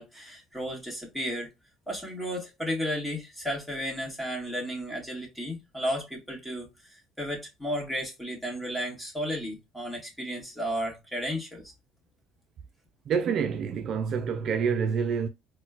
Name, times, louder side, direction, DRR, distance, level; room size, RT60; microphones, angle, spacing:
voice 1, 0.0-1.5 1.9-11.7, equal, 5° left, 1.5 m, -33 dB
voice 2, 13.1-15.3, right 6 dB, 50° right, 0.3 m, -27 dB
4.2 x 2.2 x 2.3 m
cardioid pair, 105°, 0 cm